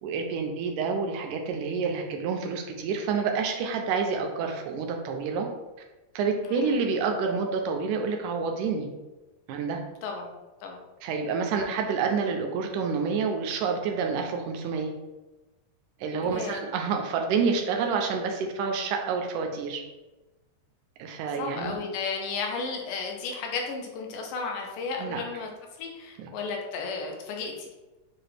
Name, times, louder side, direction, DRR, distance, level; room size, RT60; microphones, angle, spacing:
voice 1, 0.0-5.5 6.2-8.9 9.5-9.8 11.0-14.9 16.0-19.8 21.0-21.8 25.0-25.2 26.2-26.3, right 5 dB, 80° right, 3 dB, 1.8 m, -28 dB
voice 2, 10.0-10.3 10.6-10.8 11.6-11.8 16.2-16.6 21.4-25.5 25.8-27.7, left 4 dB, 80° left, 1 dB, 2.4 m, -34 dB
6.7 x 2.4 x 3.2 m, 1.1 s
omnidirectional pair, 3.9 m